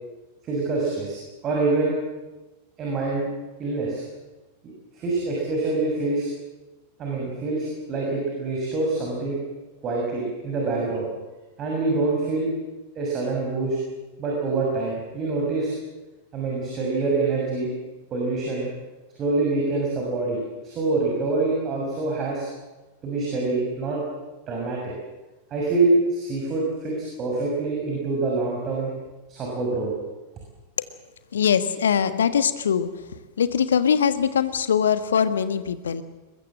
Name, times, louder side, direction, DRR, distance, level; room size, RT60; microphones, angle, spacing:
voice 1, 0.4-1.2 1.4-1.9 2.8-3.3 3.6-4.0 4.9-6.3 7.0-9.4 9.8-11.1 11.6-12.5 12.9-13.8 14.2-15.7 16.3-17.7 18.1-18.7 19.2-22.5 23.0-24.0 24.5-24.9 25.5-28.9 29.3-29.9, right 3 dB, 30° right, -2 dB, 6.4 m, -25 dB
voice 2, 31.3-32.9 33.4-36.0, left 7 dB, 65° left, 12 dB, 1.4 m, -22 dB
22.5 x 21.5 x 7.5 m, 1.1 s
figure-of-eight pair, 90°, 0 cm